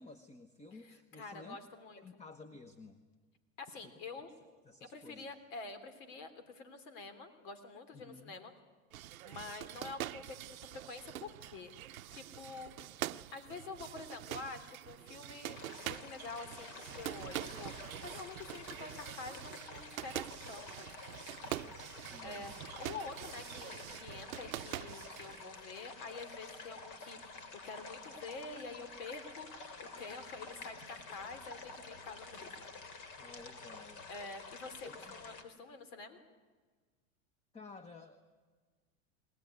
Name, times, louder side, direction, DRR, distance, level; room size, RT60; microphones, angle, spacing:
voice 1, 0.0-1.6 2.0-3.0 3.8-4.3 4.6-5.3 7.9-8.3 21.3-22.6 33.2-34.1 34.8-35.2 37.5-38.4, left 3 dB, 15° left, 10 dB, 1.2 m, -54 dB
voice 2, 0.8-2.0 3.6-4.3 4.8-8.5 9.2-10.4 10.7-11.7 12.1-12.7 13.3-20.9 22.2-27.4 27.6-29.7 30.0-32.7 34.1-36.2, left 4 dB, 65° left, 10 dB, 3.3 m, -47 dB
sound 1, 8.9-25.4, right 13 dB, 90° right, 0.7 m, -45 dB
sound 2, 15.5-35.4, left 3 dB, 45° left, 3.0 m, -50 dB
22.0 x 17.5 x 9.6 m, 1.4 s
hypercardioid pair, 105°, 40 cm